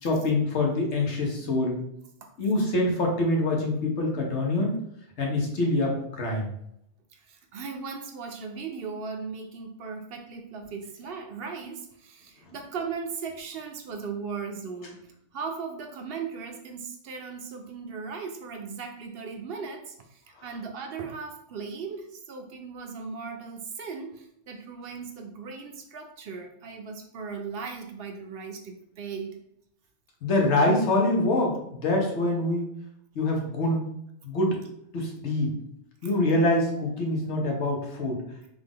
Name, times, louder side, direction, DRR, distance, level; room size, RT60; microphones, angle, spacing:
voice 1, 0.0-1.8 2.4-4.8 5.2-6.5 30.2-32.7 33.1-33.8 34.2-34.6 34.9-35.5 36.0-38.2, left 2 dB, 85° left, 0 dB, 1.2 m, -25 dB
voice 2, 7.1-29.4 36.0-36.1, right 5 dB, 65° right, 3 dB, 0.7 m, -38 dB
3.4 x 2.4 x 3.6 m, 0.74 s
omnidirectional pair, 1.1 m